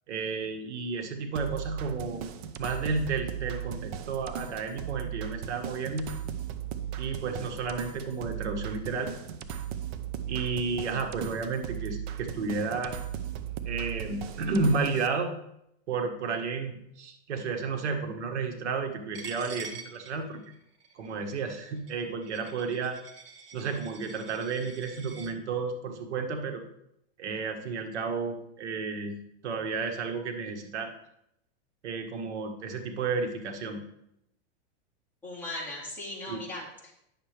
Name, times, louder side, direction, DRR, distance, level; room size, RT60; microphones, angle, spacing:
voice 1, 0.1-2.2 2.6-6.1 7.0-9.1 10.3-12.9 13.6-15.3 15.9-20.4 20.9-23.0 23.5-26.6 27.2-29.2 29.4-30.9 31.8-33.8 36.3-36.4, right 4 dB, 90° right, 5 dB, 1.5 m, -32 dB
sound 1, 1.3-15.1, right 9 dB, 35° right, 0.5 m, -37 dB
Coin (dropping), 19.1-25.3, right 5 dB, 55° right, 1.4 m, -47 dB
voice 2, 35.2-36.9, left 1 dB, 5° left, -6 dB, 2.1 m, -38 dB
10.0 x 6.8 x 3.4 m, 0.77 s
supercardioid pair, 160°, 33 cm